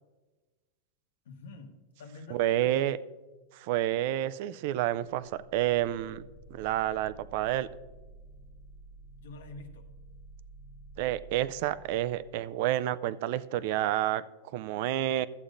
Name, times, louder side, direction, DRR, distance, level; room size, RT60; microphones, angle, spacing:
voice 1, 1.2-2.9 9.2-9.9, left 3 dB, 80° left, 6 dB, 1.3 m, -47 dB
voice 2, 2.3-3.0 3.5-6.2 6.5-7.7 11.0-15.3, right 13 dB, 45° right, 16 dB, 0.3 m, -29 dB
sound 1, 5.1-12.6, right 2 dB, 5° right, 1.2 m, -52 dB
14.0 x 8.2 x 2.5 m, 1.2 s
supercardioid pair, 165°, 0 cm